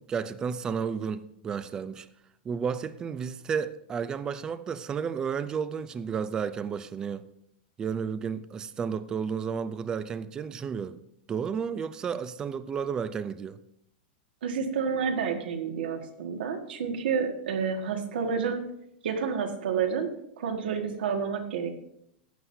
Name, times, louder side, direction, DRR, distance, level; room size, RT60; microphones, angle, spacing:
voice 1, 0.0-2.1 2.4-7.3 7.8-11.0 11.3-13.6, right 6 dB, 15° right, 0.4 m, -32 dB
voice 2, 14.4-18.6 19.0-20.1 20.4-21.7, right 6 dB, 75° right, 1.8 m, -29 dB
15.5 x 9.5 x 2.7 m
supercardioid pair, 165°, 5 cm